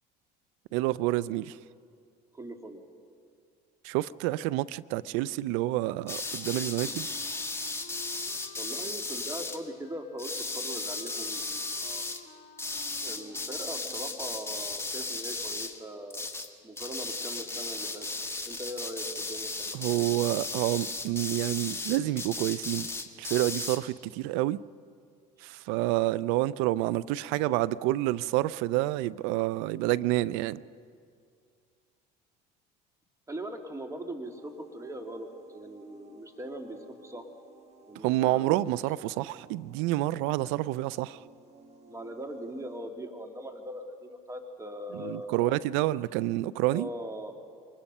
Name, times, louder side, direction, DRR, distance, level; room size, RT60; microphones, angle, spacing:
voice 1, 0.7-1.6 3.8-7.1 19.7-22.9 23.2-24.6 25.4-30.6 37.9-41.3 44.9-46.9, right 16 dB, 70° right, 0.5 m, -28 dB
voice 2, 2.3-2.8 8.6-12.0 13.0-16.2 16.6-18.1 18.5-19.7 33.3-37.3 37.9-38.4 41.9-45.5 46.7-47.3, right 1 dB, 15° right, 2.7 m, -40 dB
sound 1, 6.1-9.6 10.2-12.2 12.6-15.8 16.1-16.5 16.8-23.8, left 3 dB, 10° left, 1.7 m, -35 dB
Wind instrument woodwind instrument, 6.3-14.4, left 5 dB, 40° left, 1.8 m, -53 dB
sound 2, 34.2-42.8, right 3 dB, 30° right, 2.4 m, -56 dB
24.5 x 20.5 x 5.5 m
hypercardioid pair, 75°, 21 cm